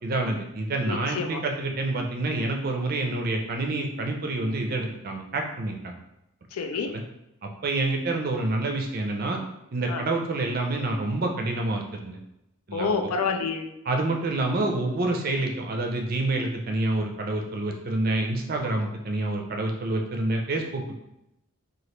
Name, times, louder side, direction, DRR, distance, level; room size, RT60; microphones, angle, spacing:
voice 1, 0.0-5.9 6.9-7.0 7.4-9.4 9.7-12.2 12.7-12.9 13.9-21.0, right 2 dB, 40° right, 2 dB, 0.4 m, -27 dB
voice 2, 0.9-1.4 6.5-6.9 9.9-10.0 12.7-13.7, left 5 dB, 85° left, 5 dB, 0.4 m, -28 dB
2.9 x 2.4 x 3.1 m, 0.86 s
head